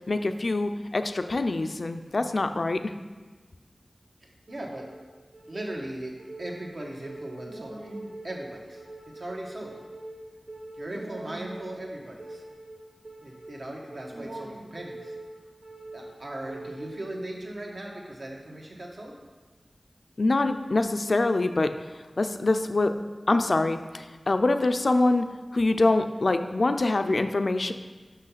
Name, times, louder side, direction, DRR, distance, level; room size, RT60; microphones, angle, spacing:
voice 1, 0.1-2.9 20.2-21.8 22.2-23.0 23.3-27.7, left 2 dB, 65° left, 8 dB, 0.4 m, -25 dB
voice 2, 4.2-4.9 5.5-7.8 8.2-8.8 9.1-9.7 10.8-12.4 13.2-15.2 15.9-19.1, right 1 dB, 65° right, -1 dB, 1.4 m, -38 dB
sound 1, 4.5-17.5, right 1 dB, 85° right, 1.2 m, -43 dB
6.4 x 5.9 x 5.7 m, 1.3 s
wide cardioid pair, 75°, 0 cm